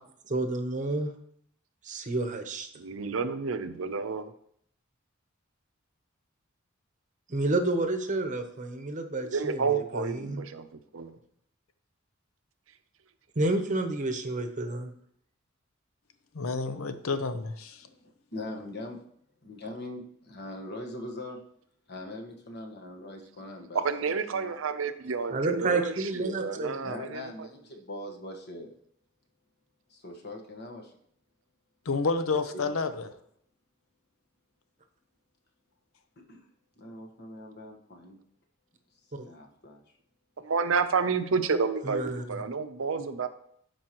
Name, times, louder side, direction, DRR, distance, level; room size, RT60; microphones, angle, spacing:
voice 1, 0.2-1.1 1.8-2.7 7.3-9.6 9.9-10.4 13.4-14.9 25.3-26.9 39.1-39.3 41.8-42.2, right 2 dB, 35° right, 7 dB, 0.8 m, -30 dB
voice 2, 2.8-4.3 9.3-11.2 23.7-27.5 40.4-43.3, right 5 dB, 70° right, 10 dB, 0.6 m, -30 dB
voice 3, 16.3-17.9 31.9-33.1, left 4 dB, 90° left, 10 dB, 0.7 m, -30 dB
voice 4, 17.9-19.0 19.4-21.4 21.9-24.5 26.8-28.7 29.9-30.9 32.5-32.7 36.3-36.5 36.8-38.2 39.3-39.8, left 1 dB, 55° left, 2 dB, 1.3 m, -42 dB
12.0 x 4.7 x 3.0 m, 0.68 s
head